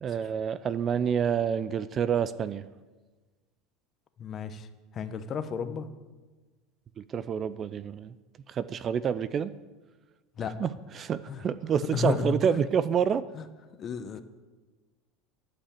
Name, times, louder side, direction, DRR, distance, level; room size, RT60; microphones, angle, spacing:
voice 1, 0.0-2.7 7.0-8.1 8.5-9.5 10.6-13.3, right 8 dB, 30° right, 16 dB, 0.4 m, -28 dB
voice 2, 4.2-4.7 4.9-5.9 10.4-10.5 11.3-11.4 11.9-12.6 13.4-13.5 13.8-14.2, left 6 dB, 35° left, 10 dB, 0.8 m, -32 dB
11.5 x 5.6 x 8.5 m, 1.3 s
supercardioid pair, 130°, 0 cm